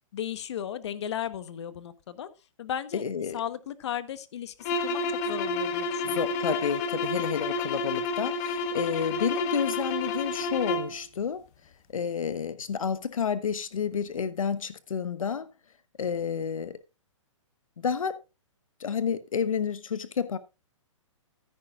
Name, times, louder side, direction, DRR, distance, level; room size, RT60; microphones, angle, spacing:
voice 1, 0.1-2.3 2.6-3.0 3.3-6.3, left 9 dB, 55° left, 1.2 m, -35 dB
voice 2, 2.9-3.4 6.0-11.4 11.9-15.5 16.0-16.8 17.8-18.2 18.8-20.4, left 7 dB, 90° left, 1.0 m, -30 dB
sound 1, 4.6-11.0, left 3 dB, 30° left, 1.3 m, -30 dB
14.5 x 10.0 x 2.5 m
hypercardioid pair, 155°, 17 cm